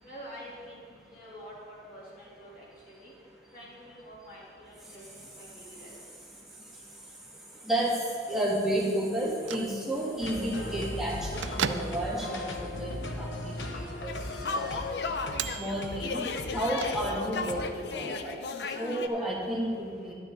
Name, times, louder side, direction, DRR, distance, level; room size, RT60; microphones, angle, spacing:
voice 1, 0.0-3.1 3.5-6.0 18.8-19.6, equal, 50° left, -7 dB, 2.9 m, -48 dB
voice 2, 8.3-14.1 14.4-14.9 15.6-16.2 16.5-18.4 18.8-20.1, right 1 dB, ahead, -5 dB, 1.8 m, -31 dB
Bell / Microwave oven, 9.2-17.5, right 7 dB, 90° right, 0.4 m, -40 dB
sound 1, 10.2-17.6, left 1 dB, 80° left, 1.0 m, -38 dB
sound 2, 14.1-19.1, left 4 dB, 65° left, 0.6 m, -35 dB
11.5 x 10.0 x 3.8 m, 2.2 s
head